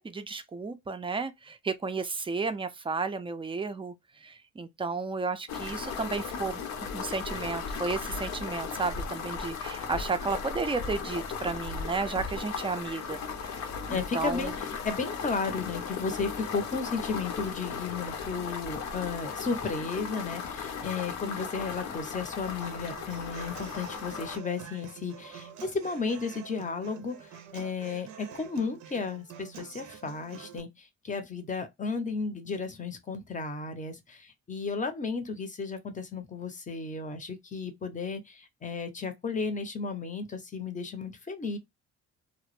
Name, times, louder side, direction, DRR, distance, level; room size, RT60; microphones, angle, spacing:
voice 1, 0.0-13.6 13.9-14.5, right 4 dB, 20° right, 0.4 m, -33 dB
sound 1, 5.5-24.4, left 6 dB, 65° left, 0.6 m, -36 dB
voice 2, 13.9-41.6, left 4 dB, 25° left, 0.6 m, -34 dB
Human voice / Acoustic guitar, 22.6-30.6, right 8 dB, 75° right, 0.6 m, -47 dB
2.1 x 2.0 x 3.0 m
cardioid pair, 90°, 30 cm